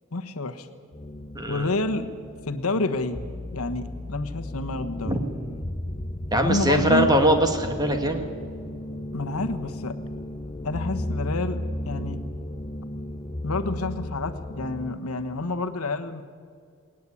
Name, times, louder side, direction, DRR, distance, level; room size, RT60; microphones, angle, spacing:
voice 1, 0.1-0.7 1.5-3.2 3.5-5.1 6.3-7.1 9.1-10.0 10.6-12.2 13.4-16.2, left 2 dB, 70° left, 7 dB, 1.2 m, -29 dB
sound 1, 0.9-14.9, left 1 dB, 20° left, 0.7 m, -34 dB
voice 2, 1.3-1.7 5.1-5.2 6.3-8.2, right 1 dB, 15° right, 5 dB, 1.9 m, -22 dB
20.0 x 18.5 x 8.5 m, 2.2 s
head